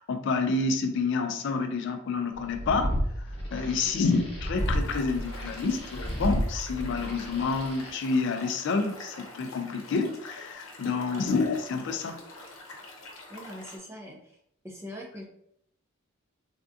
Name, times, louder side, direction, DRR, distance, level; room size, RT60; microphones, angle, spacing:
voice 1, 0.0-12.2, left 4 dB, 55° left, 7 dB, 0.3 m, -29 dB
sound 1, 2.4-7.9, equal, 25° left, 1.1 m, -32 dB
sound 2, 4.5-13.8, left 2 dB, 75° left, 0.8 m, -46 dB
voice 2, 13.3-14.4 14.6-15.2, equal, 10° right, -1 dB, 0.5 m, -42 dB
3.4 x 2.4 x 2.6 m, 0.72 s
head